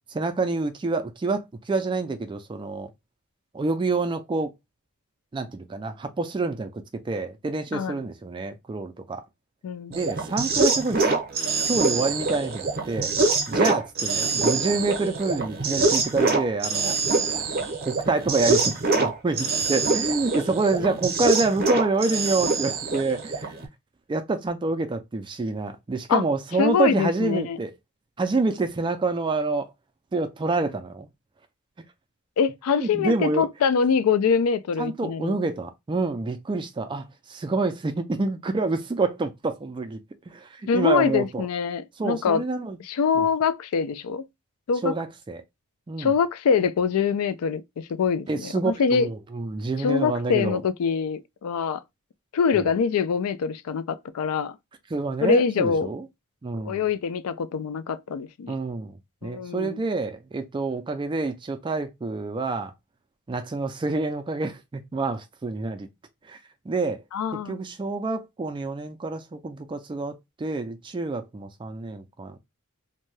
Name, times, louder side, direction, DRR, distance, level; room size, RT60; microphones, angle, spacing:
voice 1, 0.1-2.9 3.5-4.5 5.3-9.2 9.9-11.1 11.6-13.1 13.5-17.0 17.8-23.5 24.1-27.7 28.2-29.7 30.1-31.1 32.8-33.5 34.8-40.0 40.3-41.5 42.0-42.8 43.2-43.3 44.8-45.4 45.9-46.1 48.3-50.6 52.5-52.7 54.9-56.1 56.4-56.8 58.5-62.7 63.3-65.9 66.2-66.4 66.7-67.0 67.5-72.4, right 3 dB, 20° right, 0.3 m, -27 dB
voice 2, 7.7-8.0 9.6-10.0 20.8-20.9 26.1-26.2 26.6-27.6 32.4-35.4 40.7-42.4 42.8-44.3 44.7-45.0 46.0-49.1 49.8-51.8 52.3-54.6 55.2-55.9 56.6-58.6 59.2-59.8 67.1-67.6, left 6 dB, 75° left, 0.3 m, -24 dB
sound 1, 9.9-23.7, right 3 dB, 45° right, 0.7 m, -25 dB
2.6 x 2.2 x 3.1 m
head